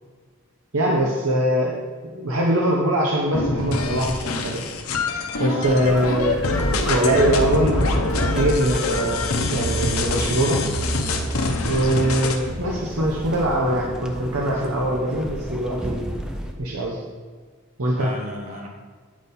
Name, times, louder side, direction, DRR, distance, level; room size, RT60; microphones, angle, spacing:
voice 1, 0.7-1.8 2.1-4.6 5.4-10.7 11.6-16.0 16.6-17.0 17.8-18.1, right 1 dB, 85° right, -2 dB, 0.9 m, -22 dB
sound 1, 3.3-12.4, left 2 dB, 90° left, 0.8 m, -24 dB
sound 2, 5.6-16.5, equal, 5° right, 0.5 m, -34 dB
voice 2, 5.6-6.2 17.9-18.7, equal, 35° right, -1 dB, 1.1 m, -34 dB
8.5 x 4.2 x 5.3 m, 1.5 s
head